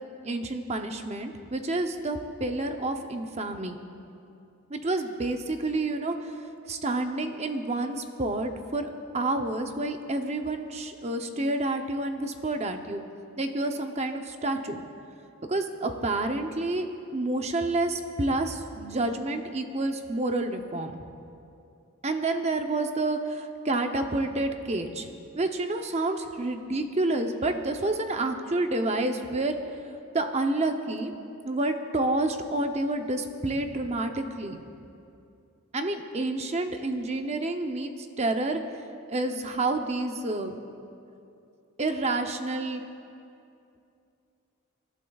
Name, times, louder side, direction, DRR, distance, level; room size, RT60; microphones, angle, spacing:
voice 1, 0.2-3.8 4.7-6.3 6.7-8.9 9.1-13.0 13.4-14.8 15.5-16.9 17.1-21.0 22.0-25.1 25.4-29.6 30.1-31.1 31.4-34.6 35.7-38.6 39.1-40.6 41.8-42.8, right 2 dB, 30° right, 5 dB, 0.7 m, -29 dB
27.0 x 12.0 x 2.4 m, 2.6 s
head